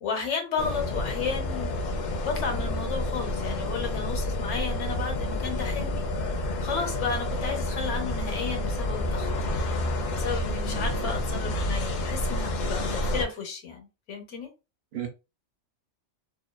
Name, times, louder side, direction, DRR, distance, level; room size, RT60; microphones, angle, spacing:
voice 1, 0.0-1.7 2.2-9.3 10.1-14.5, left 5 dB, 90° left, 1.1 m, -33 dB
sound 1, 0.6-13.3, left 1 dB, 60° left, 0.5 m, -29 dB
voice 2, 10.6-11.1 14.9-15.1, right 8 dB, 65° right, 0.8 m, -35 dB
2.6 x 2.2 x 2.2 m
omnidirectional pair, 1.2 m